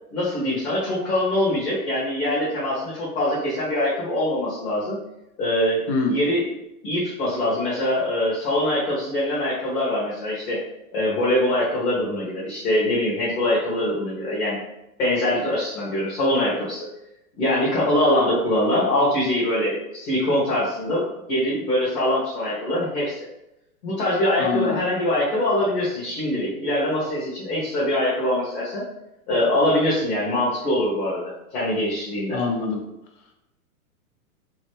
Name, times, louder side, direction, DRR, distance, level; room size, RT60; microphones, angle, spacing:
voice 1, 0.1-5.0 5.4-6.5 6.8-10.6 10.9-14.6 15.0-16.9 17.4-23.3 23.8-28.8 29.3-32.4, left 1 dB, 70° left, -7 dB, 1.3 m, -23 dB
voice 2, 5.9-6.2 24.4-24.8 32.3-32.8, left 4 dB, 35° left, 2 dB, 0.6 m, -24 dB
3.1 x 2.1 x 3.3 m, 0.89 s
hypercardioid pair, 110°, 45 cm